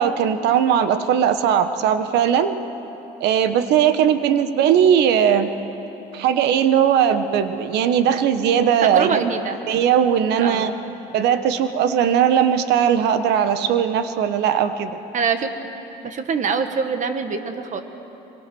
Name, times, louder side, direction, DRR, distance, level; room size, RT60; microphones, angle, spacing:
voice 1, 0.0-2.5 3.2-5.5 6.1-9.3 9.7-10.7 11.1-14.9, right 8 dB, 85° right, 10 dB, 1.2 m, -18 dB
voice 2, 8.8-9.6 10.4-10.7 15.1-15.5 16.0-17.8, right 5 dB, 45° right, 7 dB, 1.7 m, -24 dB
24.5 x 22.5 x 6.3 m, 3.0 s
cardioid pair, 110°, 17 cm